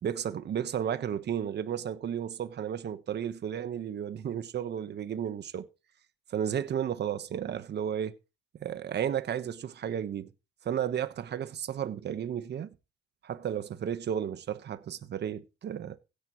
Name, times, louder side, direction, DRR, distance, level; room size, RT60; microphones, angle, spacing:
voice 1, 0.0-5.7 6.3-8.1 8.6-10.3 10.6-12.7 13.2-16.0, right 9 dB, 60° right, 1.2 m, -33 dB
16.5 x 10.0 x 3.1 m
cardioid pair, 90°, 20 cm